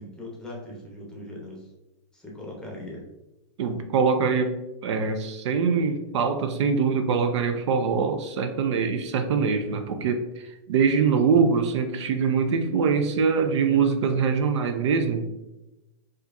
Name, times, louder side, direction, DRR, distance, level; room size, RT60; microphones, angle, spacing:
voice 1, 0.0-1.7 2.1-3.0, left 1 dB, 5° left, -3 dB, 0.9 m, -39 dB
voice 2, 3.6-15.3, right 5 dB, 70° right, 7 dB, 0.5 m, -23 dB
4.4 x 2.4 x 2.6 m, 0.99 s
hypercardioid pair, 135°, 16 cm